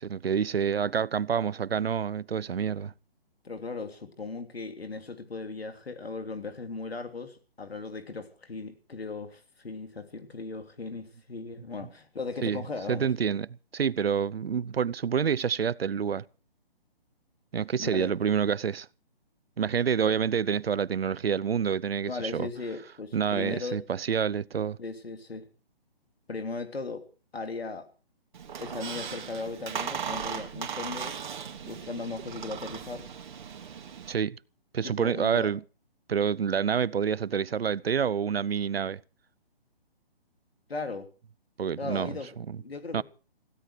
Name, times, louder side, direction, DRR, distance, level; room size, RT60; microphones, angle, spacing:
voice 1, 0.0-2.9 12.4-12.6 12.9-16.2 17.5-18.9 19.6-22.5 23.1-24.8 34.1-34.4 34.7-35.6 36.1-39.0 41.6-42.2 42.5-42.6 42.9-43.0, right 7 dB, 80° right, 0.8 m, -28 dB
voice 2, 3.4-13.1 17.8-18.3 20.0-20.1 22.1-23.8 24.8-25.5 26.3-27.1 27.3-27.9 28.6-31.2 31.6-33.1 34.8-35.5 40.7-41.1 41.8-43.0, left 3 dB, 80° left, 3.3 m, -37 dB
Squeak, 28.3-34.1, right 7 dB, 50° right, 2.7 m, -37 dB
16.5 x 16.5 x 4.8 m
hypercardioid pair, 145°, 30 cm